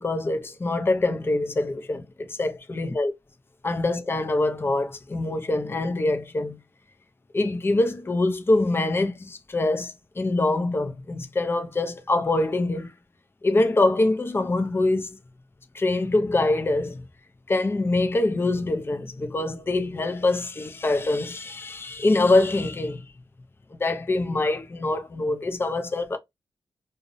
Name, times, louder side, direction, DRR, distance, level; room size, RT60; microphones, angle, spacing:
voice 1, 0.0-3.1 3.6-6.6 7.3-12.9 13.4-15.2 15.7-17.0 17.5-23.0 23.8-26.2, left 2 dB, 25° left, 0.4 m, -24 dB
2.5 x 2.0 x 2.5 m
wide cardioid pair, 90°, 10 cm